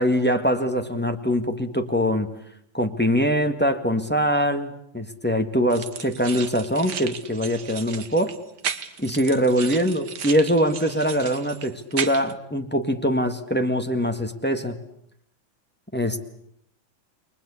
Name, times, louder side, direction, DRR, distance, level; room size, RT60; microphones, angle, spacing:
voice 1, 0.0-2.3 2.7-8.3 9.0-14.7 15.9-16.3, equal, 5° left, 6 dB, 1.6 m, -23 dB
sound 1, 5.7-12.3, right 7 dB, 60° right, 1.9 m, -35 dB
29.5 x 22.5 x 8.4 m, 0.73 s
omnidirectional pair, 2.2 m